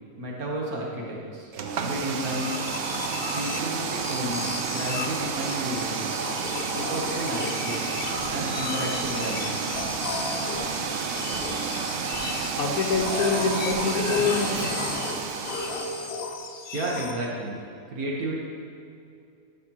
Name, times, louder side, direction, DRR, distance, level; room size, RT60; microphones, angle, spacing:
voice 1, 0.2-1.5 1.8-2.6 3.3-6.2 6.7-9.8 16.7-17.6 17.9-18.4, right 1 dB, 80° right, -2 dB, 1.6 m, -32 dB
sound 1, 1.5-16.2, right 5 dB, 65° right, 0.8 m, -30 dB
sound 2, 2.2-17.1, left 4 dB, 55° left, 0.7 m, -35 dB
sound 3, 7.8-9.3 9.7-12.5 12.9-13.9, left 1 dB, 30° left, 1.7 m, -44 dB
voice 2, 12.6-15.1, left 4 dB, 80° left, 3 dB, 1.3 m, -26 dB
11.5 x 6.4 x 2.9 m, 2.5 s
omnidirectional pair, 1.5 m